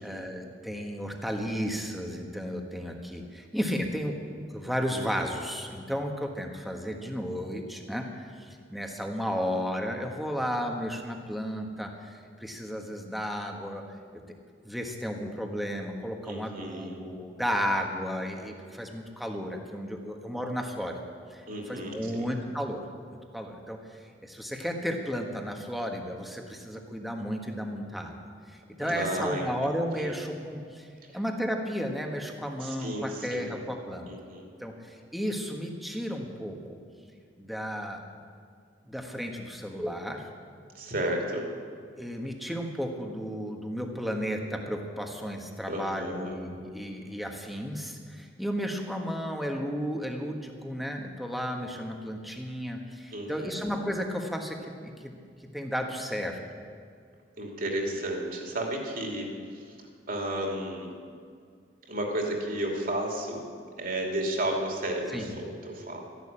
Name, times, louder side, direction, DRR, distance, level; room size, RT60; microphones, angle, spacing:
voice 1, 0.0-4.1 4.5-13.8 14.1-14.2 14.6-21.0 21.3-22.8 23.3-28.2 28.5-30.9 31.1-34.1 34.6-36.8 37.4-38.3 38.8-40.3 42.0-54.6 54.8-56.6 65.1-65.4, equal, ahead, 2 dB, 1.4 m, -33 dB
voice 2, 16.2-17.0 21.5-22.3 28.8-30.2 31.0-31.1 32.6-33.5 34.1-34.4 40.7-41.5 45.7-46.4 53.1-53.6 57.4-59.8 60.1-61.0 61.9-63.4 63.8-66.0, right 1 dB, 50° right, 0 dB, 2.8 m, -33 dB
13.5 x 11.0 x 8.8 m, 2.2 s
head